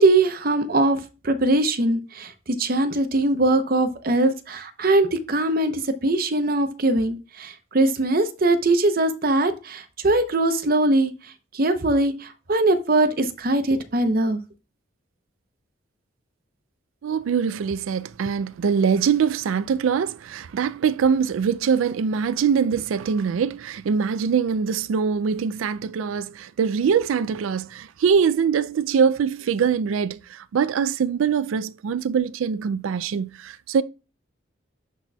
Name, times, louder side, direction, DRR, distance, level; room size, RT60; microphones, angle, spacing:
voice 1, 0.0-11.1 11.5-14.4, right 2 dB, 45° right, 0.7 m, -21 dB
voice 2, 17.0-33.8, right 6 dB, 80° right, 0.3 m, -23 dB
12.0 x 4.1 x 2.3 m
head